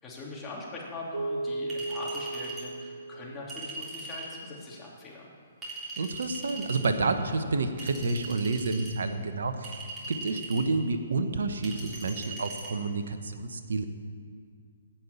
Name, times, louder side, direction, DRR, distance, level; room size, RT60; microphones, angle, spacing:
voice 1, 0.0-5.3, left 2 dB, 20° left, -4 dB, 3.1 m, -41 dB
Keyboard (musical), 1.1-4.1, right 2 dB, 85° right, 0.5 m, -36 dB
Chink clink, 1.7-2.7 3.5-4.3 5.6-6.9 7.8-8.9 9.6-10.7 11.6-12.7, right 3 dB, 15° right, 3.6 m, -40 dB
voice 2, 5.9-9.8 10.1-13.8, right 3 dB, 70° right, 7 dB, 1.1 m, -29 dB
16.0 x 5.9 x 8.3 m, 2.1 s
figure-of-eight pair, 130°, 0 cm